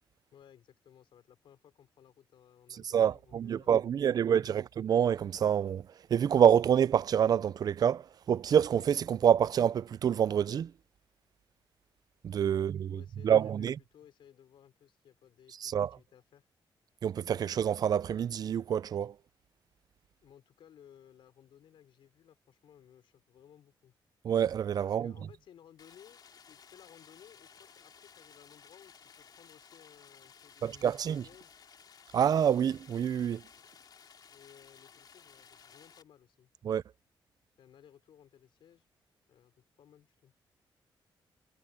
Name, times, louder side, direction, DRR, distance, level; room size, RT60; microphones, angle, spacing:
voice 1, 0.3-4.6 12.5-16.5 20.2-23.9 24.8-31.6 33.6-33.7 34.3-36.5 37.6-38.9 39.3-40.3, left 9 dB, 75° left, 4.6 m, -59 dB
voice 2, 2.9-10.7 12.2-13.8 15.6-15.9 17.0-19.1 24.2-25.1 30.6-31.2 32.1-33.4 36.6-36.8, right 8 dB, 50° right, 0.4 m, -27 dB
Stream, 25.8-36.0, left 6 dB, 50° left, 2.8 m, -57 dB
cardioid pair, 125°, 9 cm